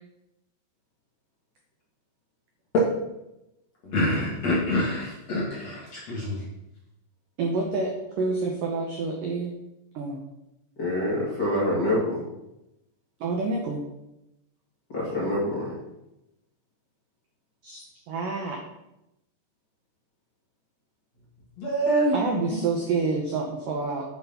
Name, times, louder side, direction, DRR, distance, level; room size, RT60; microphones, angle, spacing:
voice 1, 3.8-6.4 21.6-22.2, equal, 55° left, -5 dB, 2.0 m, -26 dB
voice 2, 7.4-9.5 9.9-10.2 13.2-13.8 17.6-18.6 22.1-24.0, right 3 dB, 80° right, 1 dB, 1.9 m, -28 dB
voice 3, 10.8-12.2 14.9-15.7, left 1 dB, 35° left, -7 dB, 1.7 m, -26 dB
9.7 x 5.9 x 5.5 m, 0.90 s
omnidirectional pair, 5.4 m